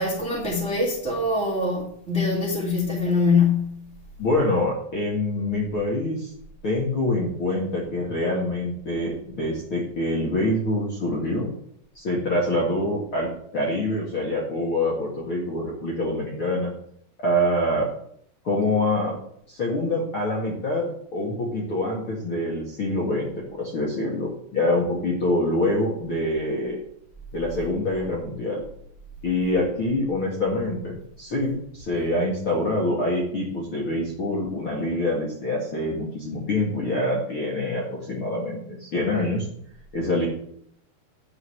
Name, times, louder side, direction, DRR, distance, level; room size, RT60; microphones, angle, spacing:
voice 1, 0.0-3.9, left 3 dB, 30° right, 1.4 m, -23 dB
voice 2, 4.2-6.3 6.6-11.5 11.9-16.7 17.2-17.9 18.4-19.2 19.5-26.8 27.3-28.6 29.2-39.5 39.9-40.3, left 1 dB, 45° left, 1.8 m, -25 dB
11.0 x 4.9 x 7.2 m
omnidirectional pair, 4.8 m